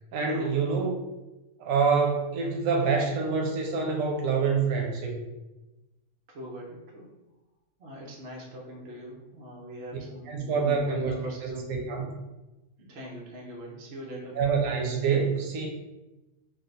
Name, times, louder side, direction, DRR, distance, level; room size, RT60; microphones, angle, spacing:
voice 1, 0.1-1.0 1.6-5.2 10.3-11.1 11.4-12.1 14.3-15.7, right 5 dB, 90° right, 2 dB, 1.0 m, -26 dB
voice 2, 6.3-7.1 7.8-11.7 12.8-14.4, equal, 55° right, -2 dB, 1.0 m, -41 dB
3.2 x 2.2 x 4.0 m, 1.0 s
omnidirectional pair, 1.3 m